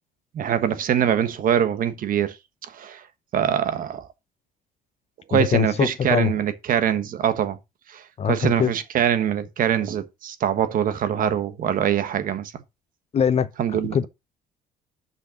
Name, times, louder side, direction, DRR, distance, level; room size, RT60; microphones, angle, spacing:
voice 1, 0.3-2.4 2.6-3.0 3.3-4.1 5.3-7.6 7.9-12.6 13.6-14.1, right 9 dB, 55° right, 1.3 m, -23 dB
voice 2, 5.3-6.3 8.2-8.7 13.1-14.1, left 8 dB, 40° left, 0.7 m, -23 dB
6.2 x 5.8 x 7.0 m
cardioid pair, 110°, 17 cm